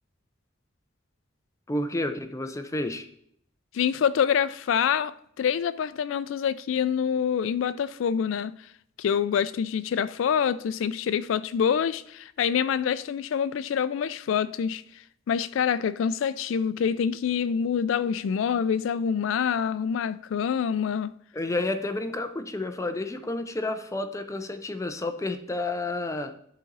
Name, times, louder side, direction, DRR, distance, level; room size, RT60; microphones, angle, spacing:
voice 1, 1.7-3.1 21.3-26.4, left 2 dB, 15° left, 0.5 m, -30 dB
voice 2, 3.7-8.5 9.0-14.8 15.3-21.1, left 7 dB, 70° left, 0.3 m, -26 dB
11.0 x 4.1 x 4.0 m
head